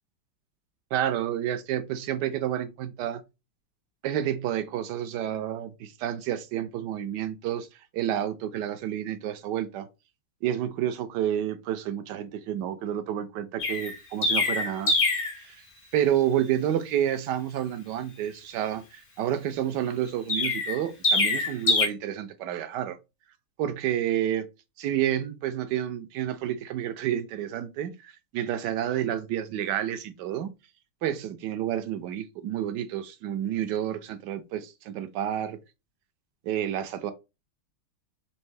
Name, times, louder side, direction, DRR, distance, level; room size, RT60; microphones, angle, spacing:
voice 1, 0.9-3.2 4.0-7.7 7.9-9.9 10.4-14.9 15.4-15.6 15.9-23.0 23.6-24.5 24.8-30.5 31.0-35.6 36.5-37.1, right 11 dB, 75° right, 1.0 m, -29 dB
Chirp tweet, 13.6-15.4 20.3-21.9, left 3 dB, 40° left, 0.8 m, -24 dB
4.4 x 2.8 x 3.2 m
omnidirectional pair, 2.2 m